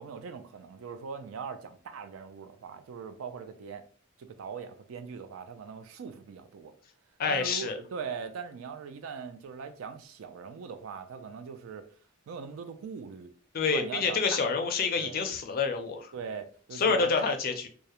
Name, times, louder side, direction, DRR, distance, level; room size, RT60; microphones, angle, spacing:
voice 1, 0.0-3.8 4.2-6.7 7.3-11.9 12.3-13.3 13.7-14.4 15.0-15.2 16.1-17.4, right 6 dB, 80° right, 0.4 m, -41 dB
voice 2, 7.2-7.8 13.5-16.1 16.8-17.7, left 5 dB, 45° left, 0.4 m, -28 dB
2.3 x 2.0 x 2.8 m
head